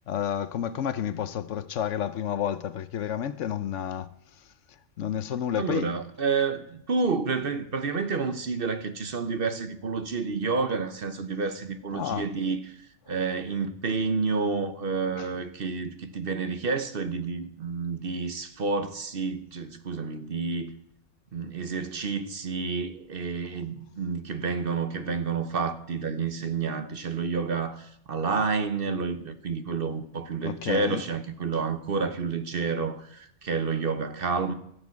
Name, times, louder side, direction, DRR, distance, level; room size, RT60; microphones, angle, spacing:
voice 1, 0.1-4.1 5.0-5.9 11.9-12.3 15.2-15.3 30.4-31.0, left 9 dB, 70° left, 1.0 m, -30 dB
voice 2, 5.6-20.7 21.3-34.5, right 4 dB, 50° right, 1.0 m, -29 dB
14.5 x 7.2 x 8.3 m
omnidirectional pair, 1.3 m